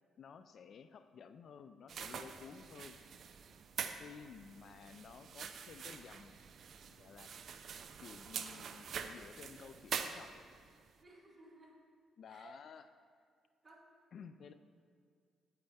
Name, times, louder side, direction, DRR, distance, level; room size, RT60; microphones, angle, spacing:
voice 1, 0.2-3.0 4.0-6.4 6.9-7.3 8.0-10.3 12.2-12.9 14.1-14.5, left 6 dB, 60° left, 11 dB, 0.4 m, -54 dB
sound 1, 1.9-10.7, right 7 dB, 60° right, 0.5 m, -45 dB
voice 2, 9.5-10.0 11.0-11.8 12.3-12.6 13.6-13.9 14.4-14.5, right 2 dB, 20° right, -4 dB, 2.3 m, -59 dB
9.4 x 9.3 x 3.5 m, 2.1 s
cardioid pair, 90°, 0 cm